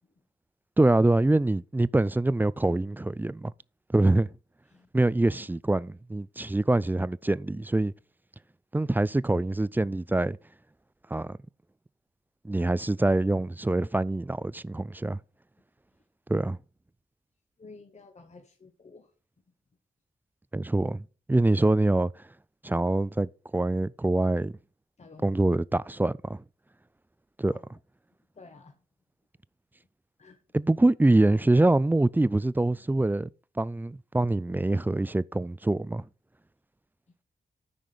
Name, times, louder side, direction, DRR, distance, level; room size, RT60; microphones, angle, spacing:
voice 1, 0.8-3.5 3.9-4.3 4.9-7.9 8.7-10.4 11.1-11.4 12.4-15.2 16.3-16.6 20.5-21.0 21.3-22.1 22.6-24.6 25.2-26.4 27.4-27.8 30.5-33.3 33.6-36.0, right 2 dB, 10° right, 0.3 m, -25 dB
voice 2, 17.6-19.1 25.0-25.4 27.5-27.6 28.3-28.8 30.2-30.4, left 3 dB, 40° left, 1.1 m, -51 dB
9.1 x 5.0 x 5.5 m
cardioid pair, 50°, 17 cm